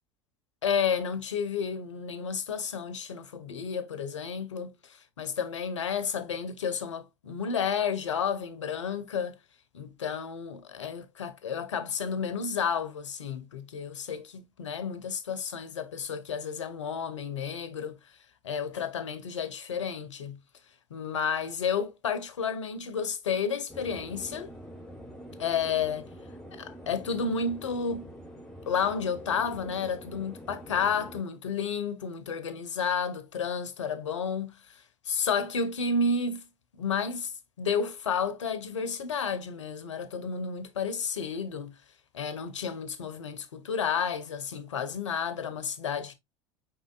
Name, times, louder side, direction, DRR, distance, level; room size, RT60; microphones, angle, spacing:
voice 1, 0.6-9.4 9.7-18.0 18.4-20.4 20.9-24.5 25.4-26.1 26.5-28.1 28.7-36.4 36.8-37.3 37.6-41.7 42.1-46.1, left 6 dB, 80° left, 0.7 m, -31 dB
sound 1, 23.7-31.2, equal, 5° left, 1.0 m, -45 dB
5.2 x 3.7 x 2.3 m
figure-of-eight pair, 75°, 15 cm